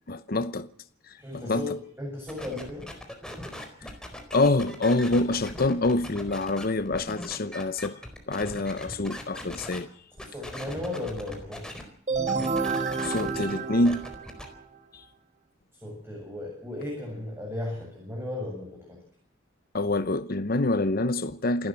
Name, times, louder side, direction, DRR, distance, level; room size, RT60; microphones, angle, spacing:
voice 1, 0.1-0.7 1.1-1.8 3.8-3.9 4.3-8.0 8.3-9.9 13.0-14.0 14.9-15.0 19.7-21.7, left 2 dB, 50° left, 0.9 m, -26 dB
voice 2, 1.2-2.9 10.2-11.6 15.8-19.0, left 2 dB, 10° right, 7.6 m, -35 dB
sound 1, 2.3-9.8 10.2-11.8 12.1-14.5, left 1 dB, 5° left, 4.3 m, -40 dB
sound 2, 12.1-14.7, right 4 dB, 40° right, 2.5 m, -29 dB
28.0 x 13.0 x 7.7 m
head